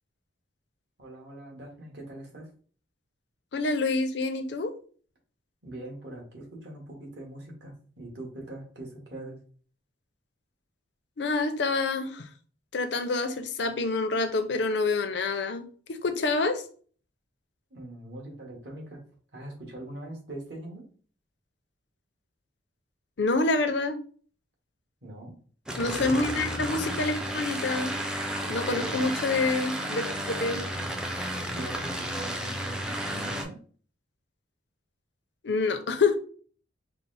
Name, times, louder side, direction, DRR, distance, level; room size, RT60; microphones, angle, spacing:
voice 1, 1.0-2.5 5.6-9.4 17.7-19.0 19.3-20.9 25.0-25.3 25.9-26.5 28.7-29.1 31.3-33.6, right 1 dB, 65° right, 0 dB, 1.4 m, -41 dB
voice 2, 3.5-4.7 11.2-12.3 12.7-16.6 23.2-24.0 25.8-28.0 28.5-30.6 35.4-36.2, left 3 dB, 65° left, 7 dB, 0.5 m, -27 dB
sound 1, 25.7-33.4, right 1 dB, 5° right, 0.4 m, -32 dB
4.3 x 2.0 x 4.0 m, 0.43 s
head